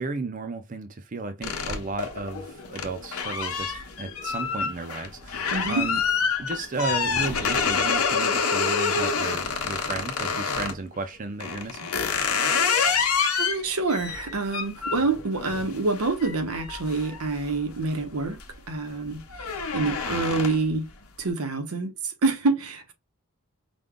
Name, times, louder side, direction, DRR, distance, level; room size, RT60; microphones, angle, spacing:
voice 1, 0.0-6.0 6.4-11.9, right 3 dB, 35° right, 0.4 m, -34 dB
sound 1, 1.4-10.8 11.4-17.8 18.2-18.6 18.9-20.8, left 5 dB, 85° left, 1.0 m, -27 dB
voice 2, 5.5-5.9 13.4-18.4 18.7-19.2 19.7-20.8 21.2-21.9 22.2-22.9, right 3 dB, 90° right, 1.0 m, -26 dB
5.1 x 2.2 x 3.7 m
head